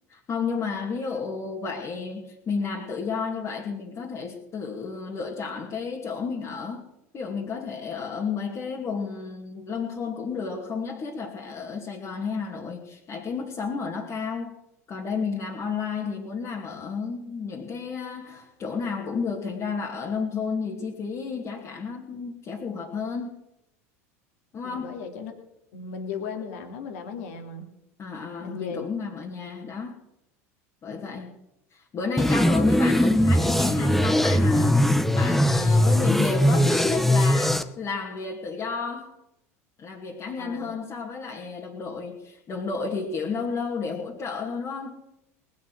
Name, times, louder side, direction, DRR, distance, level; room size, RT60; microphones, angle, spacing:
voice 1, 0.1-6.8 7.1-14.6 14.9-23.4 24.5-25.0 28.0-30.0 30.8-31.4 31.7-34.8 35.1-39.1 39.8-45.0, left 5 dB, 35° left, -3 dB, 2.6 m, -32 dB
voice 2, 24.6-25.3 25.7-27.7 28.4-28.8 40.4-40.7, left 5 dB, 70° left, 4 dB, 2.6 m, -36 dB
sound 1, 32.2-37.6, left 1 dB, 5° left, 0.9 m, -20 dB
19.5 x 8.5 x 6.3 m, 0.85 s
hypercardioid pair, 85°, 8 cm